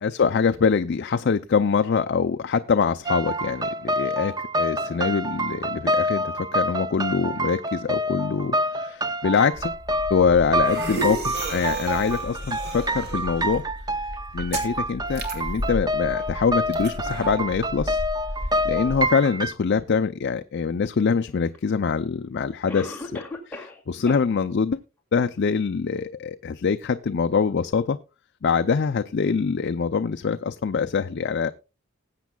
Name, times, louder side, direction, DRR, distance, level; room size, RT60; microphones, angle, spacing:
voice 1, 0.0-9.7 10.1-13.6 14.3-18.0 18.6-24.8 25.1-28.0 28.4-31.5, left 5 dB, 55° left, 8 dB, 0.4 m, -24 dB
sound 1, 3.1-19.5, equal, 20° right, 0.5 m, -27 dB
sound 2, 9.5-19.0, right 1 dB, 55° right, 2.6 m, -34 dB
Cough, 21.5-21.6 22.7-23.8 24.1-24.2 24.7-24.8 25.4-25.5, left 2 dB, 10° left, 2.3 m, -36 dB
19.5 x 8.2 x 2.3 m, 0.29 s
head